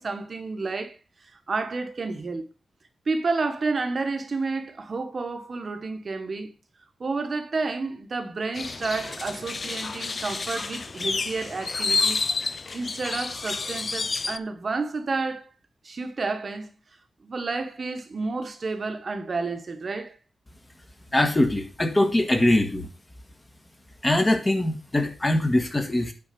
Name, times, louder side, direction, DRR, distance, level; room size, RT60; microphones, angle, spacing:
voice 1, 0.0-2.4 3.1-6.5 7.0-12.2 12.5-15.5 15.8-16.7 17.2-20.2, right 3 dB, 45° right, 1.3 m, -30 dB
sound 1, 8.5-14.4, left 4 dB, 40° left, 0.5 m, -29 dB
voice 2, 21.1-22.9 24.0-26.1, left 1 dB, 20° left, 1.6 m, -22 dB
9.6 x 4.5 x 6.9 m
wide cardioid pair, 145°, 0 cm